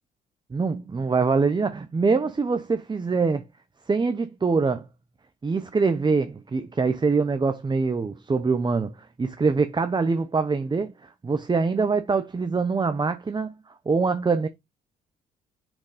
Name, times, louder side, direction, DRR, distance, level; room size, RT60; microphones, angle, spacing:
voice 1, 0.5-3.5 3.9-4.8 5.4-13.5 13.9-14.5, right 4 dB, 25° right, 0.9 m, -24 dB
6.2 x 4.0 x 4.9 m
hypercardioid pair, 60°, 19 cm